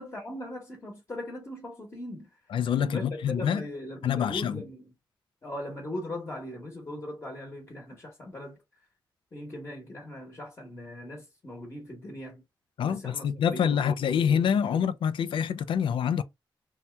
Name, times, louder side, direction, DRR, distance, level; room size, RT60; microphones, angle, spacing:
voice 1, 0.0-2.3 2.8-4.9 5.4-8.6 9.3-12.4 12.8-14.9, left 1 dB, 30° left, 1.0 m, -39 dB
voice 2, 2.5-3.6 4.0-4.6 12.8-16.2, left 8 dB, 85° left, 0.4 m, -26 dB
2.7 x 2.2 x 3.2 m
wide cardioid pair, 130°, 9 cm